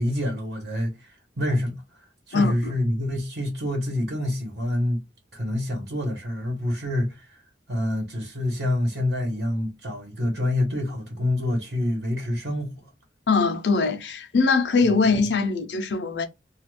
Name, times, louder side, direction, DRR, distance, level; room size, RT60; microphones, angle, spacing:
voice 1, 0.0-5.0 5.3-7.4 7.7-12.9, left 1 dB, 70° right, 1.0 m, -27 dB
voice 2, 2.3-2.7 13.3-16.2, left 4 dB, 80° left, 0.6 m, -22 dB
2.3 x 2.3 x 3.1 m
head